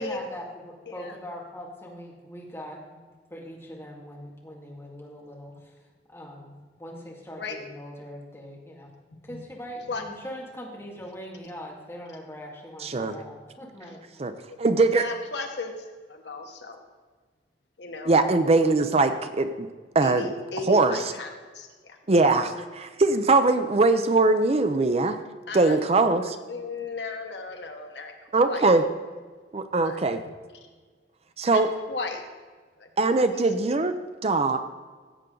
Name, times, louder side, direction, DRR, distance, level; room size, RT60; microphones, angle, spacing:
voice 1, 0.0-3.0 3.3-5.8 6.1-8.9 9.2-14.0, equal, 15° left, -2 dB, 2.1 m, -41 dB
voice 2, 0.9-1.2 7.4-7.6 9.3-9.4 9.9-10.0 13.8-14.0 15.0-16.8 17.8-18.1 20.0-22.0 25.5-25.8 26.1-26.2 26.5-28.1 28.4-28.7 29.8-30.3 31.5-31.6 31.9-32.2 32.8-32.9 33.3-33.5, left 3 dB, 80° left, 4 dB, 1.3 m, -36 dB
voice 3, 12.8-13.2 14.2-14.3 14.6-15.0 18.1-19.7 19.9-20.3 20.7-21.0 22.1-25.2 25.5-26.2 28.3-28.8 29.5-30.2 31.4-31.7 33.0-33.9 34.2-34.6, right 3 dB, 35° right, 9 dB, 0.5 m, -21 dB
16.0 x 8.0 x 3.9 m, 1.4 s
head